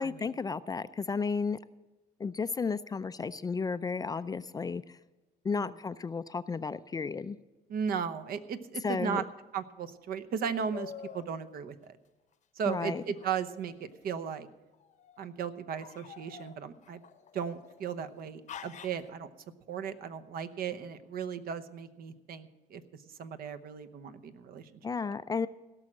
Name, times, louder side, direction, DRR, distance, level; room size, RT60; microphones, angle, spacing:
voice 1, 0.0-1.6 2.2-5.0 5.4-7.4 8.8-9.2 12.7-13.0 24.8-25.5, left 5 dB, 20° left, 14 dB, 0.4 m, -33 dB
voice 2, 7.7-9.2 9.5-12.0 12.6-14.5 15.2-17.0 17.3-19.3 19.7-22.8 23.2-24.8, right 7 dB, 60° right, 11 dB, 0.9 m, -36 dB
sound 1, 10.7-11.3 12.8-14.0 14.7-15.2 15.8-17.9 18.5-19.1, left 8 dB, 45° left, 0.8 m, -47 dB
17.0 x 6.2 x 7.6 m, 1.1 s
cardioid pair, 110°, 17 cm